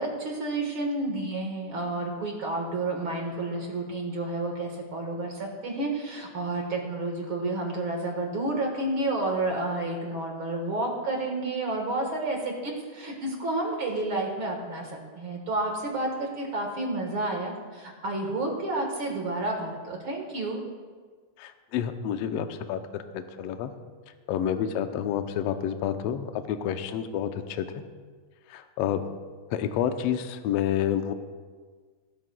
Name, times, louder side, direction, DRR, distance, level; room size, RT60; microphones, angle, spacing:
voice 1, 0.0-20.6, right 2 dB, 50° right, 1 dB, 1.9 m, -30 dB
voice 2, 21.4-23.7 24.3-27.8 28.5-29.0 29.5-31.1, left 9 dB, 75° left, 8 dB, 1.5 m, -29 dB
18.0 x 13.0 x 2.3 m, 1.5 s
omnidirectional pair, 3.6 m